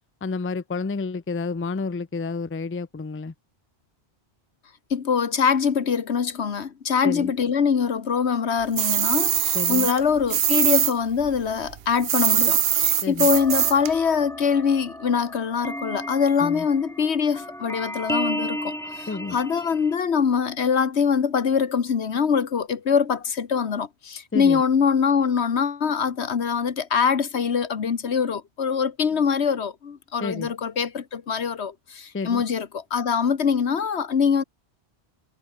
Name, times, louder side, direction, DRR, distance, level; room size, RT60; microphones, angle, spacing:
voice 1, 0.2-3.3 7.0-7.3 9.5-9.9 13.0-13.3 16.4-16.7 19.1-19.4 24.3-24.6 30.2-30.5 32.1-32.4, left 4 dB, 20° left, 0.4 m, -30 dB
voice 2, 4.9-34.4, left 6 dB, 90° left, 1.6 m, -23 dB
sound 1, 8.8-10.9 11.2-13.9, right 9 dB, 65° right, 1.0 m, -22 dB
sound 2, 13.3-19.9, equal, 5° left, 5.0 m, -34 dB
omnidirectional pair, 1.1 m